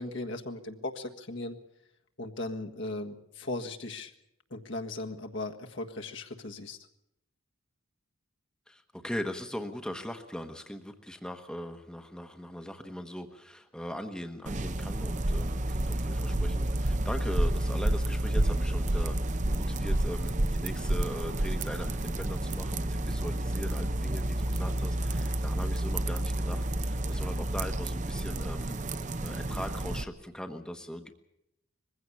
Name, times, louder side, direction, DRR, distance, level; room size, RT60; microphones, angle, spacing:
voice 1, 0.0-1.6 2.2-4.1 4.5-6.8, left 2 dB, 60° left, 3 dB, 1.6 m, -37 dB
voice 2, 8.7-28.8 29.2-31.1, equal, 5° left, 5 dB, 1.1 m, -40 dB
sound 1, 14.5-30.0, right 1 dB, 35° right, 0.7 m, -30 dB
21.5 x 15.5 x 8.5 m, 0.83 s
head